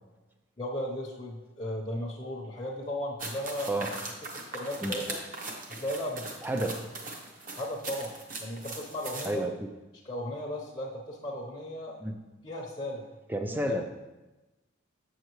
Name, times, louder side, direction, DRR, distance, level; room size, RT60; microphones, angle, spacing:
voice 1, 0.6-3.9 4.3-5.2 5.7-6.3 6.6-6.9 7.6-8.1 8.4-9.5 10.0-12.0 12.4-13.1 13.4-13.8, left 1 dB, 25° left, -5 dB, 0.8 m, -36 dB
sound 1, 3.2-9.3, right 2 dB, 40° right, 0.9 m, -40 dB
voice 2, 6.4-6.8 9.2-9.5 12.0-12.2 13.3-14.0, right 1 dB, 10° right, 6 dB, 0.4 m, -31 dB
7.6 x 6.6 x 3.1 m, 1.1 s
head